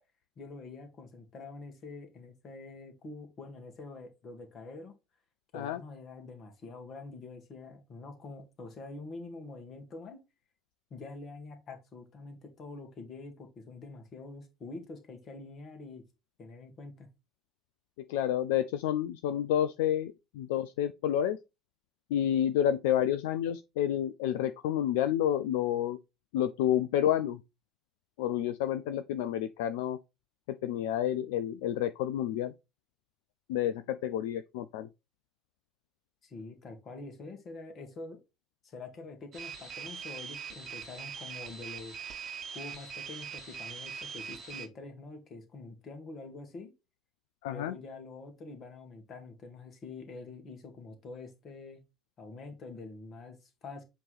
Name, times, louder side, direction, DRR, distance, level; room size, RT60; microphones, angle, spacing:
voice 1, 0.4-4.9 5.5-10.2 10.9-16.0 16.4-17.1 36.2-38.2 38.6-42.0 42.5-46.7 47.5-51.8 52.2-53.8, left 3 dB, 40° left, 1.7 m, -46 dB
voice 2, 18.1-21.4 22.1-26.0 26.3-27.4 28.2-30.0 30.6-32.5 33.5-34.9 47.4-47.7, left 11 dB, 65° left, 0.3 m, -29 dB
sound 1, 39.3-44.7, right 6 dB, 45° right, 1.2 m, -42 dB
7.4 x 3.1 x 4.1 m
figure-of-eight pair, 65°, 0 cm